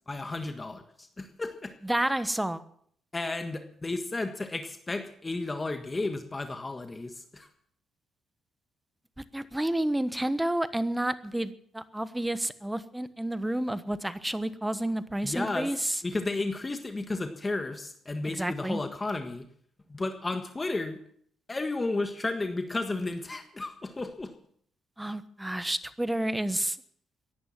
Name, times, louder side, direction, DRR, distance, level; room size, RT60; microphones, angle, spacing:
voice 1, 0.1-1.7 3.1-7.5 15.2-15.7 16.0-19.5 19.9-21.0 21.5-24.3, left 2 dB, 20° left, 7 dB, 1.6 m, -33 dB
voice 2, 1.8-2.6 9.2-16.0 18.2-18.8 25.0-26.8, right 1 dB, 10° right, 14 dB, 1.2 m, -30 dB
16.5 x 11.0 x 7.5 m, 0.63 s
cardioid pair, 90°, 0 cm